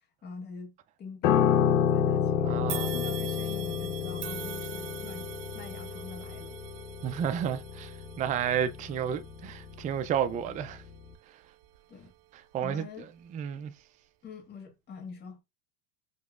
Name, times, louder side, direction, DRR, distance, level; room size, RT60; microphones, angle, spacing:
voice 1, 0.2-6.6 11.9-12.1 12.6-13.1 14.2-15.4, left 5 dB, 35° left, 1.5 m, -44 dB
Piano, 1.2-10.6 10.9-11.1, left 8 dB, 75° left, 0.8 m, -30 dB
voice 2, 2.4-3.1 7.0-10.8 12.5-12.9 13.3-13.7, right 9 dB, 25° right, 0.4 m, -31 dB
sound 1, 2.7-12.0 12.5-12.7 13.6-13.7, right 15 dB, 85° right, 0.5 m, -44 dB
5.3 x 3.0 x 2.4 m
supercardioid pair, 125°, 30 cm